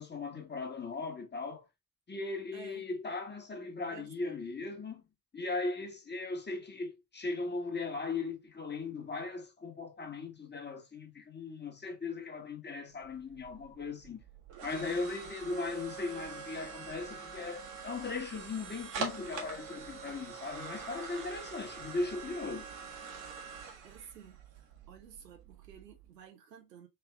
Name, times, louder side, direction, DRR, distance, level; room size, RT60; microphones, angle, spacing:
voice 1, 0.0-1.7 2.1-5.0 5.3-14.2 14.6-22.7, left 3 dB, 20° left, 1.3 m, -38 dB
voice 2, 2.5-2.9 3.9-4.4 23.8-26.9, right 8 dB, 90° right, 0.8 m, -53 dB
sound 1, 13.0-26.1, right 5 dB, 70° right, 1.5 m, -44 dB
3.5 x 3.4 x 3.3 m
hypercardioid pair, 55°, 48 cm